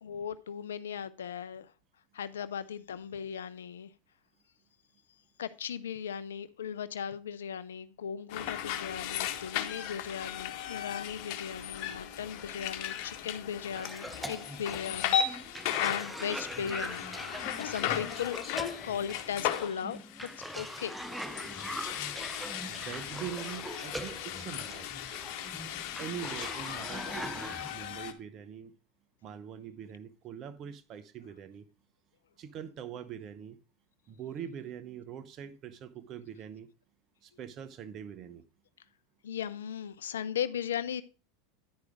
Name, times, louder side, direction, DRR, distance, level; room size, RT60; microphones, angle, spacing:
voice 1, 0.0-1.7 2.1-3.9 5.4-17.1 17.6-20.9 39.2-41.0, left 8 dB, 85° left, 0.4 m, -38 dB
sound 1, 8.3-28.1, left 10 dB, 60° left, 1.1 m, -36 dB
Cough, 13.7-27.7, equal, ahead, 0.6 m, -42 dB
voice 2, 22.6-24.9 26.0-28.7 29.2-31.7 32.4-33.6 34.1-36.7 37.2-38.4, right 9 dB, 45° right, 0.8 m, -43 dB
10.5 x 4.9 x 4.8 m
hypercardioid pair, 95°, 0 cm